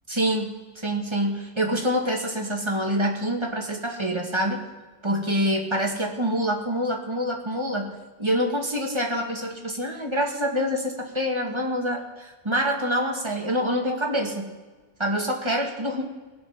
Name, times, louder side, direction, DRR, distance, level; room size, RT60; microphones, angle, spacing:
voice 1, 0.1-4.6 5.0-7.9 8.2-14.5 15.0-16.0, equal, 25° right, 1 dB, 1.7 m, -26 dB
19.0 x 7.5 x 5.7 m, 1.3 s
omnidirectional pair, 1.2 m